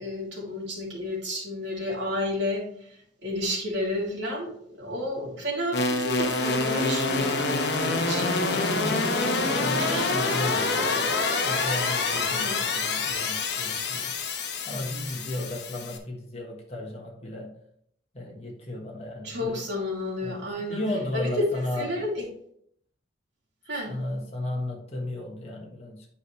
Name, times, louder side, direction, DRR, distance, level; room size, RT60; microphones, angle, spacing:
voice 1, 0.0-2.6 3.2-4.5 4.8-7.5 7.9-8.2 9.8-10.2 12.2-12.6 19.2-20.8 21.1-21.5 21.8-22.3 23.7-24.0, left 1 dB, 75° right, -3 dB, 2.8 m, -31 dB
sound 1, 5.7-16.0, left 3 dB, 65° left, 1.0 m, -26 dB
voice 2, 8.1-9.1 9.4-11.1 11.4-14.1 14.7-17.5 18.1-19.6 20.2-21.9 23.9-26.1, left 1 dB, 35° left, -2 dB, 1.4 m, -34 dB
9.1 x 4.8 x 3.3 m, 0.68 s
head